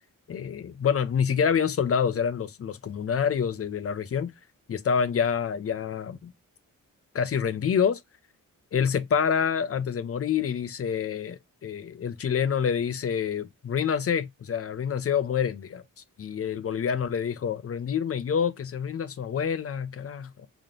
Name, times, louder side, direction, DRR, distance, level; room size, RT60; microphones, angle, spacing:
voice 1, 0.3-4.3 4.7-6.3 7.1-8.0 8.7-15.8 16.2-20.5, left 7 dB, 45° left, 0.5 m, -27 dB
3.5 x 2.8 x 3.7 m
wide cardioid pair, 170°, 33 cm